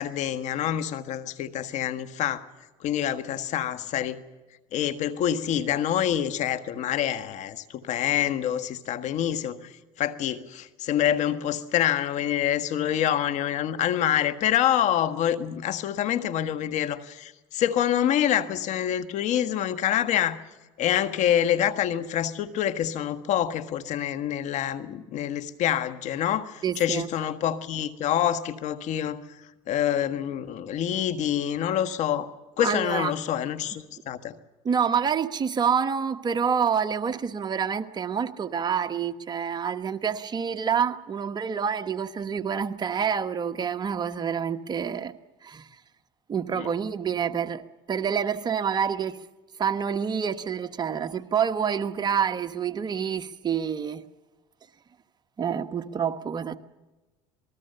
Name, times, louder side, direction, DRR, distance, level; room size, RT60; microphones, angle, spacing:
voice 1, 0.0-2.4 2.8-4.2 4.7-20.4 20.8-29.2 29.7-32.3 32.6-34.3 46.6-46.7, left 10 dB, 60° left, 1.5 m, -26 dB
voice 2, 26.6-27.1 32.6-33.1 34.6-45.2 45.4-45.7 46.3-49.2 49.6-54.0 55.4-56.6, right 7 dB, 30° right, 1.1 m, -27 dB
27.0 x 20.0 x 6.8 m
supercardioid pair, 105°, 14 cm